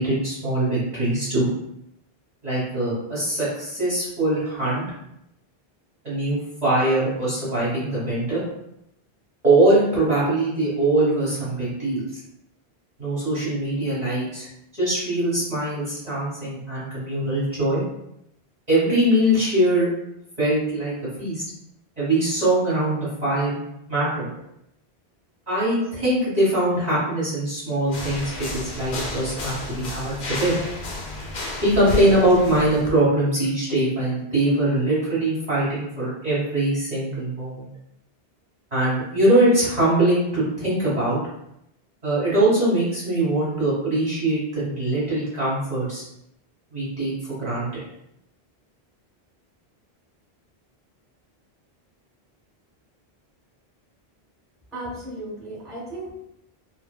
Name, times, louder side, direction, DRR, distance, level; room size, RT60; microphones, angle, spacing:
voice 1, 0.0-1.5 2.4-4.8 6.0-8.4 9.4-12.1 13.0-14.5 14.8-17.8 18.7-19.9 20.4-21.4 22.0-23.6 23.9-24.3 25.5-30.6 31.6-37.6 38.7-41.2 42.0-46.0 46.7-47.8, right 1 dB, 40° right, -10 dB, 1.2 m, -22 dB
sound 1, 27.9-32.9, left 2 dB, 60° left, 0.7 m, -32 dB
voice 2, 54.7-56.1, right 1 dB, ahead, -8 dB, 1.1 m, -35 dB
2.9 x 2.2 x 2.2 m, 0.80 s
omnidirectional pair, 1.1 m